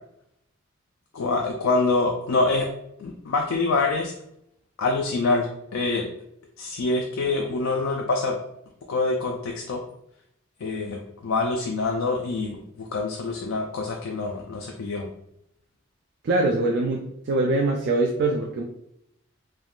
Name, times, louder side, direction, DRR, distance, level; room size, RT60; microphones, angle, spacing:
voice 1, 1.1-2.7 3.0-4.1 4.8-6.1 6.6-8.4 8.9-9.8 10.6-15.1, left 3 dB, 70° left, 1 dB, 0.4 m, -25 dB
voice 2, 16.2-18.6, right 2 dB, 55° right, 1 dB, 0.3 m, -23 dB
3.4 x 2.3 x 2.3 m, 0.77 s
head